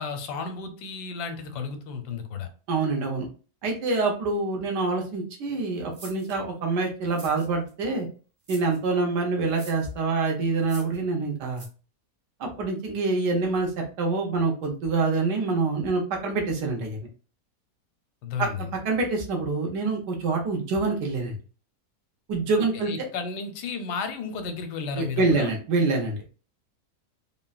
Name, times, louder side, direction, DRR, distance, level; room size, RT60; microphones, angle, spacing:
voice 1, 0.0-2.5 18.2-18.6 22.7-25.5, left 5 dB, 85° left, 7 dB, 1.2 m, -33 dB
voice 2, 2.7-3.3 3.6-8.1 8.5-11.6 12.4-17.0 18.4-21.4 22.3-22.9 25.0-26.2, right 3 dB, 90° right, 1 dB, 1.5 m, -26 dB
sound 1, 5.9-6.4 7.0-7.7 8.4-8.8 9.5-9.9 10.6-11.0 11.5-11.7, right 2 dB, 35° right, 0.7 m, -45 dB
3.8 x 2.1 x 2.3 m, 0.37 s
omnidirectional pair, 1.8 m